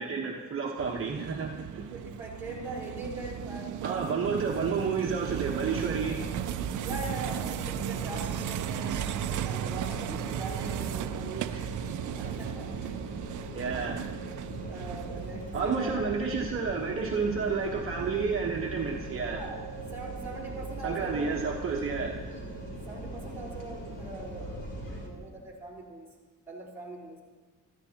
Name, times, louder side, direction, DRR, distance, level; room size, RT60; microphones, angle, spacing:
voice 1, 0.0-1.8 3.8-6.2 11.4-11.7 13.5-14.1 15.5-19.4 20.8-22.2, right 5 dB, 45° right, -2 dB, 1.2 m, -30 dB
sound 1, 0.8-15.8, right 11 dB, 70° right, 0.5 m, -36 dB
voice 2, 1.7-4.4 6.8-11.6 12.2-12.9 14.7-16.0 19.3-19.6 19.9-21.4 21.9-22.0 22.9-24.7 25.0-26.1 26.5-27.2, right 2 dB, 5° right, -6 dB, 4.0 m, -41 dB
sound 2, 5.6-25.1, right 1 dB, 35° left, 3.2 m, -40 dB
25.0 x 13.5 x 2.9 m, 1.4 s
wide cardioid pair, 170°, 32 cm